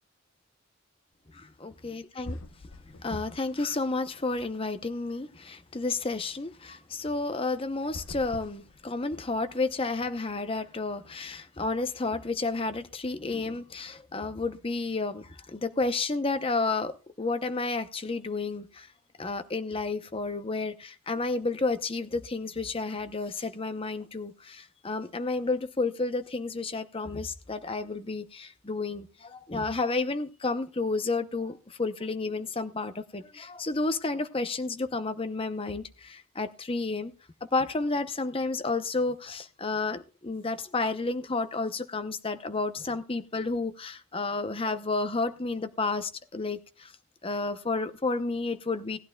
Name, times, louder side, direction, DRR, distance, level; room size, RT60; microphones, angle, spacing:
voice 1, 1.3-2.4 3.0-18.9 19.2-37.1 37.5-46.9 47.2-49.0, left 3 dB, 25° left, 0.8 m, -31 dB
sound 1, 1.8-1.9 2.2-3.6 3.9-5.0 7.8-9.3, left 1 dB, 75° left, 0.9 m, -43 dB
18.5 x 11.5 x 2.3 m
head